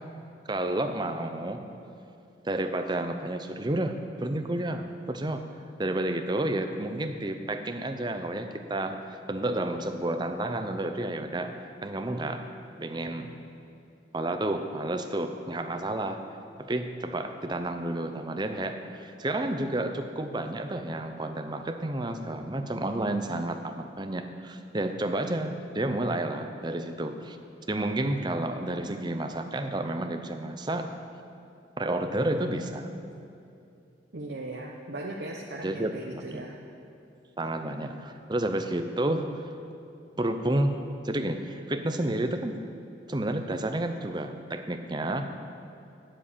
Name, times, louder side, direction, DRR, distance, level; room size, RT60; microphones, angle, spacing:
voice 1, 0.5-1.6 2.4-5.4 5.8-12.5 12.8-13.5 14.1-16.3 16.6-27.4 27.7-31.0 31.8-32.9 35.6-36.5 37.4-39.5 40.2-40.8 41.0-42.6 43.1-45.4, right 1 dB, 25° right, 7 dB, 0.6 m, -31 dB
voice 2, 34.1-36.6 37.6-38.0, right 2 dB, 65° right, -2 dB, 0.9 m, -38 dB
9.5 x 7.6 x 8.5 m, 2.6 s
head